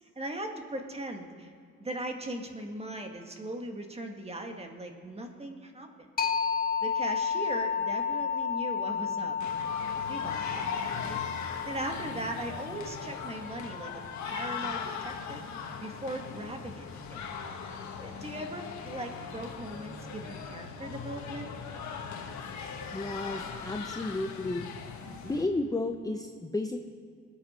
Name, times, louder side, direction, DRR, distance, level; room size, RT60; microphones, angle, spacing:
voice 1, 0.1-1.5 1.8-5.9 6.8-9.4 10.1-11.2 11.5-15.4 15.8-17.2 17.7-21.5, right 1 dB, 20° right, 4 dB, 1.8 m, -39 dB
sound 1, 6.2-15.6, left 6 dB, 30° left, 1.1 m, -33 dB
sound 2, 9.4-25.5, left 6 dB, 70° left, 1.6 m, -39 dB
voice 2, 22.9-24.7 25.2-26.9, left 2 dB, 10° left, 4 dB, 0.7 m, -32 dB
20.5 x 8.7 x 4.4 m, 2.3 s
cardioid pair, 90°, 30 cm